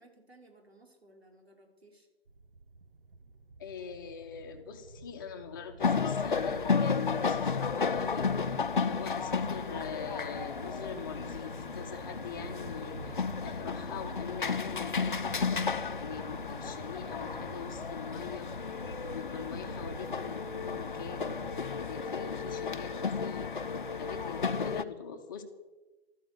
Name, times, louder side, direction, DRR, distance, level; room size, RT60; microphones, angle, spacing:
voice 1, 0.0-2.1, right 2 dB, 75° right, 2 dB, 5.2 m, -59 dB
sound 1, 2.3-21.7, right 3 dB, 55° right, 1.4 m, -49 dB
voice 2, 3.6-15.7 16.0-18.5 19.0-21.4 21.8-23.6 24.0-25.4, left 6 dB, 20° left, 5 dB, 1.3 m, -43 dB
sound 2, 5.8-24.8, left 5 dB, 50° left, 1.0 m, -33 dB
14.0 x 13.5 x 6.8 m, 1.2 s
figure-of-eight pair, 145°, 32 cm